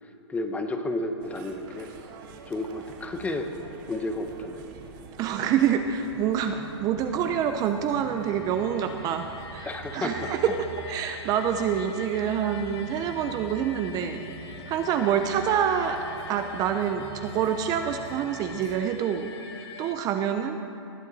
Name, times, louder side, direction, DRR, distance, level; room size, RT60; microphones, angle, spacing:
voice 1, 0.3-1.9 2.5-3.5 3.9-4.7 9.6-10.3, left 2 dB, 10° left, 6 dB, 0.8 m, -31 dB
sound 1, 1.2-18.8, right 5 dB, 45° right, 1.3 m, -45 dB
voice 2, 5.2-10.6 10.9-16.0 16.3-20.6, right 8 dB, 25° right, 7 dB, 0.5 m, -27 dB
sound 2, 7.7-19.9, left 7 dB, 60° left, 1.2 m, -45 dB
19.5 x 10.5 x 4.0 m, 2.9 s
hypercardioid pair, 140°, 15 cm